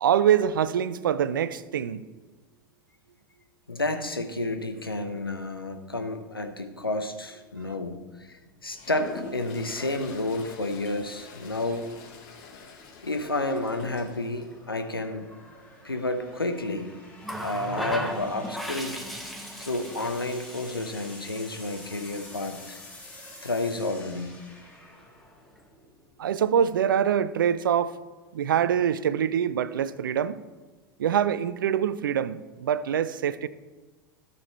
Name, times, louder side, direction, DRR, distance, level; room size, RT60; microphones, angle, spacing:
voice 1, 0.0-2.0 26.2-27.9 28.3-30.4 31.0-33.5, right 9 dB, 65° right, 0.5 m, -24 dB
voice 2, 3.7-11.9 13.0-15.3 15.8-16.9 17.4-19.0 19.6-22.8 23.4-24.4, left 2 dB, 85° left, 0.9 m, -31 dB
sound 1, 8.0-26.7, left 2 dB, 15° left, 3.0 m, -50 dB
Toilet flush, 8.7-14.5, left 5 dB, 50° left, 1.8 m, -44 dB
Water tap faucet, 17.2-22.8 24.0-24.2, equal, ahead, 1.2 m, -37 dB
13.5 x 7.0 x 4.2 m
figure-of-eight pair, 85°, 12 cm